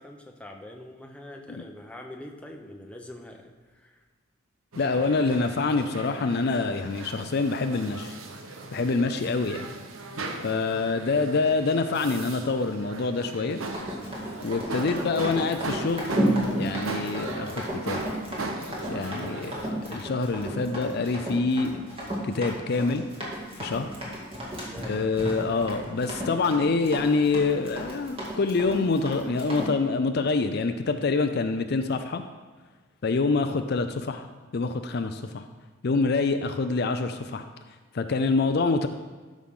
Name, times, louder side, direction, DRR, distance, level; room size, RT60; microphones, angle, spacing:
voice 1, 0.0-4.0 9.1-9.3 24.6-25.1, left 1 dB, 5° left, 2 dB, 0.8 m, -44 dB
sound 1, 4.7-19.7, right 2 dB, 90° right, 0.9 m, -38 dB
voice 2, 4.8-8.2 8.7-9.7 10.4-13.6 14.4-16.1 16.5-18.0 18.9-21.7 22.2-23.1 23.6-23.9 24.9-32.2 33.0-34.3 34.5-35.5 35.8-37.5 37.9-38.9, left 3 dB, 50° left, 8 dB, 0.4 m, -26 dB
Run, 13.6-29.7, equal, 25° right, 2.1 m, -33 dB
12.5 x 6.2 x 3.7 m, 1.4 s
head